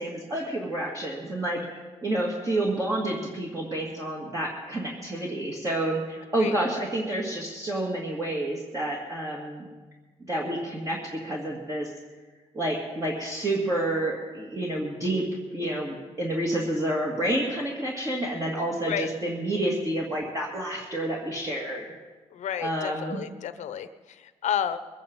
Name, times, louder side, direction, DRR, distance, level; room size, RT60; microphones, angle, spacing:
voice 1, 0.0-9.6 10.3-11.9 12.5-15.2 15.5-21.8 22.6-23.2, right 1 dB, 25° right, -3 dB, 2.2 m, -29 dB
voice 2, 22.3-24.8, left 9 dB, 70° left, 10 dB, 0.9 m, -31 dB
22.0 x 9.1 x 5.4 m, 1.3 s
cardioid pair, 135°, 13 cm